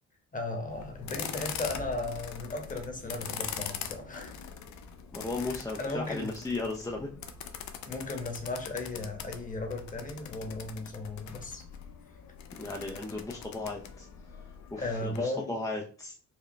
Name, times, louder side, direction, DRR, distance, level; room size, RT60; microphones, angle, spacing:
voice 1, 0.3-4.4 5.4-6.4 7.9-11.6 14.8-15.5, left 2 dB, 25° left, 3 dB, 1.2 m, -36 dB
sound 1, 0.7-15.2, left 7 dB, 70° left, 0.6 m, -42 dB
voice 2, 5.1-7.1 12.6-14.1 14.7-16.1, left 2 dB, 10° left, -1 dB, 0.5 m, -35 dB
4.9 x 2.2 x 3.2 m, 0.41 s
cardioid pair, 90°, 30 cm